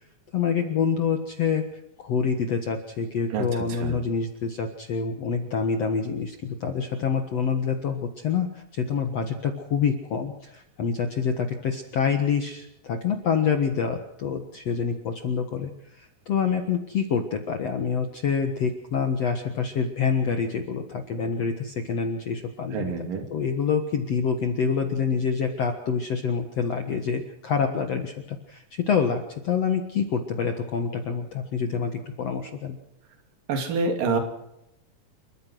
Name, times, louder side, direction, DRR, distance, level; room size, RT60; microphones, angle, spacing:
voice 1, 0.3-1.7 2.0-32.8, left 6 dB, 50° left, 5 dB, 2.2 m, -27 dB
voice 2, 3.3-4.0 22.7-23.3 33.5-34.2, right 4 dB, 65° right, 5 dB, 4.4 m, -27 dB
29.5 x 14.5 x 6.4 m, 0.83 s
omnidirectional pair, 4.4 m